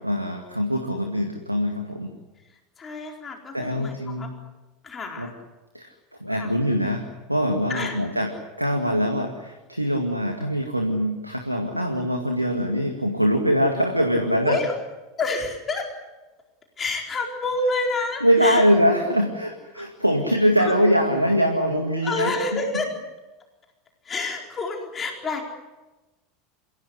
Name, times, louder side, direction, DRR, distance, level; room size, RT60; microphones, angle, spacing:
voice 1, 0.0-2.1 3.5-4.3 5.2-5.3 5.7-5.9 6.2-7.0 7.3-8.3 8.6-14.6 18.2-22.3, equal, 90° right, 4 dB, 2.1 m, -23 dB
voice 2, 2.8-4.3 4.8-5.3 6.3-6.5 7.7-8.0 14.4-14.7 15.2-15.9 16.8-18.6 19.7-19.9 20.6-20.7 22.0-22.9 24.0-25.4, left 3 dB, 25° left, 1 dB, 4.4 m, -28 dB
27.5 x 16.5 x 9.8 m, 1.1 s
figure-of-eight pair, 80°, 0 cm